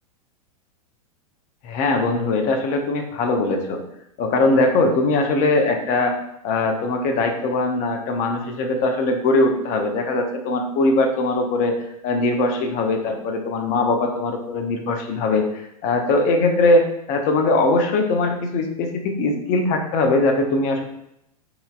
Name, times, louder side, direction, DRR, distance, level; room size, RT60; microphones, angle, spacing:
voice 1, 1.6-3.8 4.2-6.2 6.4-11.8 12.0-20.8, left 2 dB, 40° left, 4 dB, 0.7 m, -21 dB
5.6 x 2.7 x 2.3 m, 0.79 s
hypercardioid pair, 95°, 19 cm